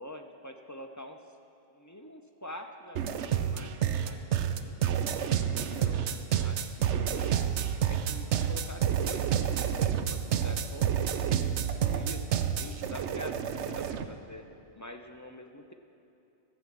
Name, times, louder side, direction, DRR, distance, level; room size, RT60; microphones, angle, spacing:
voice 1, 0.0-1.4 1.7-3.8 4.0-4.8 5.5-14.4 14.8-15.7, left 1 dB, 20° left, 4 dB, 0.5 m, -46 dB
sound 1, 3.0-14.1, right 9 dB, 85° right, 1.0 m, -29 dB
14.0 x 8.2 x 7.4 m, 2.9 s
omnidirectional pair, 1.1 m